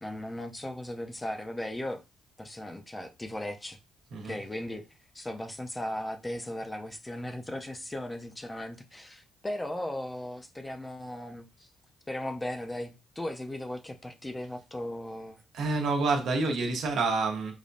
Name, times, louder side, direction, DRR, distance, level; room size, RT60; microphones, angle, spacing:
voice 1, 0.0-2.0 2.4-3.8 4.2-4.9 5.1-11.7 12.1-15.4, left 1 dB, 15° left, 0.6 m, -37 dB
voice 2, 4.1-4.4 15.5-17.5, right 3 dB, 75° right, 1.0 m, -28 dB
5.0 x 2.3 x 2.6 m
cardioid pair, 90°, 0 cm